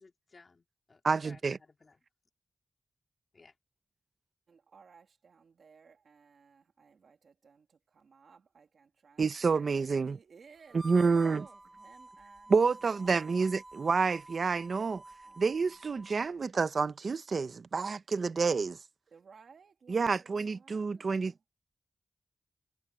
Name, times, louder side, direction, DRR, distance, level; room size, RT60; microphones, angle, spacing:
voice 1, 0.0-2.0 3.3-3.5, left 3 dB, 45° left, 4.0 m, -59 dB
voice 2, 1.0-1.6 9.2-10.2 10.7-11.5 12.5-15.0 15.4-18.8 19.9-21.5, right 4 dB, 60° right, 0.9 m, -29 dB
voice 3, 4.5-7.7 7.9-9.2 9.5-9.7 10.0-12.5 13.0-13.3 15.3-15.4 19.1-20.3 20.6-21.3, right 5 dB, 90° right, 2.7 m, -58 dB
Harmonica, 10.7-16.3, right 2 dB, 25° right, 7.1 m, -50 dB
wide cardioid pair, 100°, 0 cm